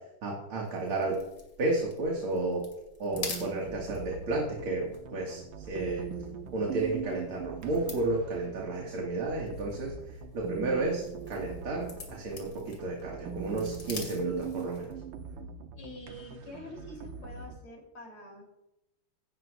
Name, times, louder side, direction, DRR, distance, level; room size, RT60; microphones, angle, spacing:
voice 1, 0.2-1.2 1.6-2.6 3.0-4.9 5.1-6.1 6.5-14.9, right 2 dB, 90° right, -2 dB, 3.0 m, -32 dB
sound 1, 0.6-15.0, left 3 dB, 50° left, 2.9 m, -47 dB
sound 2, 3.1-17.6, right 6 dB, 70° right, 1.6 m, -42 dB
voice 2, 15.8-18.4, left 1 dB, 85° left, 0 dB, 4.6 m, -46 dB
16.5 x 13.5 x 2.6 m, 0.87 s
omnidirectional pair, 2.3 m